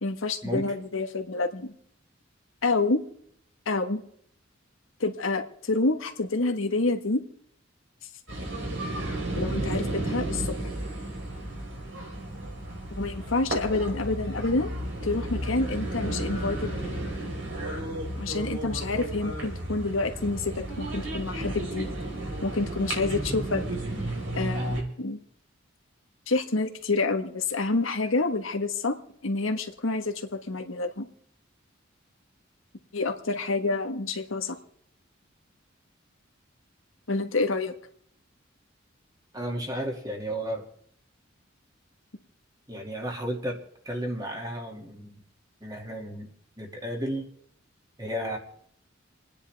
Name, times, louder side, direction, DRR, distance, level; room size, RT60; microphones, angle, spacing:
voice 1, 0.0-1.7 2.6-3.0 3.7-4.0 5.0-7.2 9.3-10.5 13.0-14.7 15.0-16.9 18.2-22.0 22.4-23.6 24.3-25.2 26.3-29.0 29.2-31.1 32.9-34.6 37.1-37.7, left 3 dB, 85° left, 6 dB, 1.5 m, -28 dB
sound 1, 8.3-24.8, right 1 dB, 70° right, 4.4 m, -33 dB
voice 2, 39.3-40.7 42.7-43.6 43.8-45.2 45.6-46.3 46.6-47.3 48.0-48.4, equal, 20° right, 1 dB, 2.3 m, -33 dB
29.0 x 9.9 x 3.5 m, 0.66 s
head